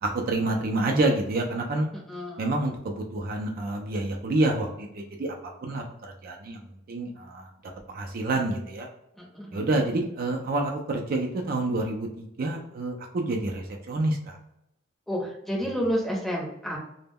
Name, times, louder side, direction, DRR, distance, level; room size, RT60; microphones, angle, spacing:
voice 1, 0.0-1.9 2.4-5.3 5.6-6.6 6.9-7.5 7.9-8.9 9.5-14.4, right 2 dB, 45° right, 1 dB, 0.4 m, -28 dB
voice 2, 2.1-2.5 9.2-9.6 15.1-16.8, equal, ahead, -3 dB, 0.6 m, -30 dB
2.2 x 2.0 x 3.4 m, 0.81 s
head